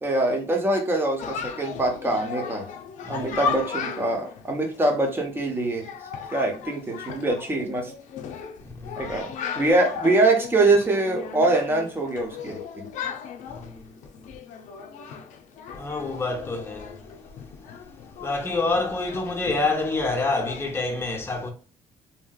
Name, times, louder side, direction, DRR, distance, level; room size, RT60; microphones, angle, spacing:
voice 1, 0.0-2.6 3.1-5.8 6.3-7.9 9.0-9.3 9.6-12.9, right 2 dB, 15° right, 1.0 m, -23 dB
Chatter, 1.2-20.8, left 6 dB, 75° left, 0.5 m, -36 dB
voice 2, 3.0-3.4 8.6-8.9 13.5-13.9 15.7-16.9 18.2-21.5, left 3 dB, 20° left, 0.9 m, -27 dB
3.0 x 2.9 x 2.3 m
cardioid pair, 110°, 13 cm